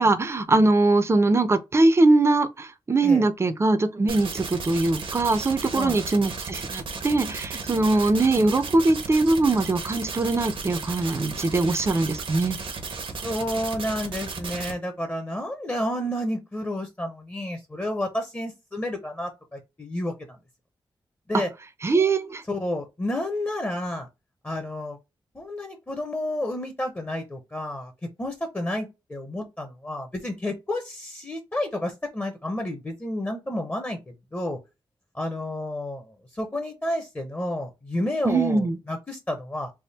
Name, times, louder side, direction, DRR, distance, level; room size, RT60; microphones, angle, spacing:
voice 1, 0.0-12.6 21.8-22.4 38.3-38.8, right 2 dB, 30° right, 0.5 m, -22 dB
sound 1, 4.1-14.7, right 4 dB, 80° right, 1.0 m, -34 dB
voice 2, 5.7-6.1 13.2-20.4 21.3-21.5 22.5-24.1 24.4-25.0 25.3-34.6 35.1-39.7, left 1 dB, 20° left, 0.7 m, -30 dB
3.5 x 2.1 x 4.1 m
wide cardioid pair, 120°, 9 cm